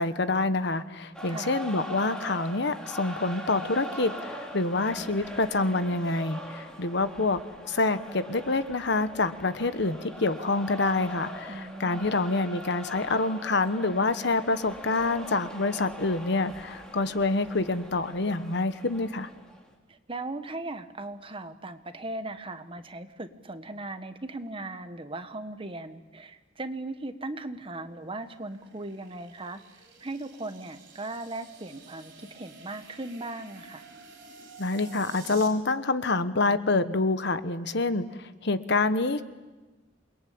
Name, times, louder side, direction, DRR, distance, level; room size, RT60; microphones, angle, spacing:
voice 1, 0.0-19.3 34.6-39.2, left 3 dB, 65° left, 12 dB, 1.2 m, -27 dB
sound 1, 1.1-19.7, equal, 5° left, 3.8 m, -42 dB
voice 2, 1.2-1.6 11.5-12.1 19.9-29.6 30.0-33.8, right 2 dB, 30° right, 8 dB, 1.4 m, -38 dB
sound 2, 27.5-35.5, right 5 dB, 70° right, 5.3 m, -50 dB
28.0 x 21.5 x 8.7 m, 1.2 s
head